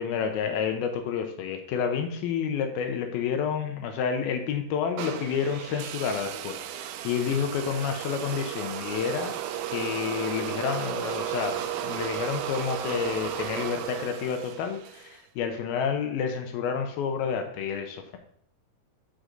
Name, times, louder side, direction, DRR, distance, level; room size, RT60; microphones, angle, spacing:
voice 1, 0.0-9.3 9.7-18.2, left 7 dB, 85° left, 5 dB, 2.6 m, -29 dB
sound 1, 5.0-15.2, right 10 dB, 85° right, 2.3 m, -34 dB
6.5 x 6.2 x 3.9 m, 0.64 s
omnidirectional pair, 4.3 m